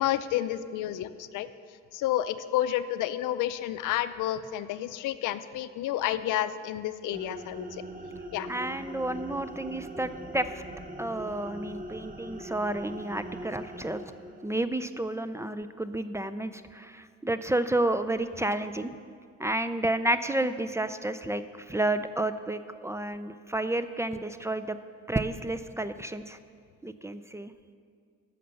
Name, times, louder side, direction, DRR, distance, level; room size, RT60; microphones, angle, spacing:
voice 1, 0.0-1.5 1.9-7.8 8.3-8.5, left 12 dB, 85° left, 13 dB, 0.5 m, -30 dB
sound 1, 7.1-14.6, right 1 dB, 25° right, 1.0 m, -42 dB
voice 2, 8.5-10.6 11.0-14.0 14.4-18.9 19.4-24.8 25.1-26.4 26.8-27.5, right 1 dB, 10° right, 11 dB, 0.4 m, -31 dB
11.0 x 6.6 x 6.9 m, 2.2 s
cardioid pair, 90°, 30 cm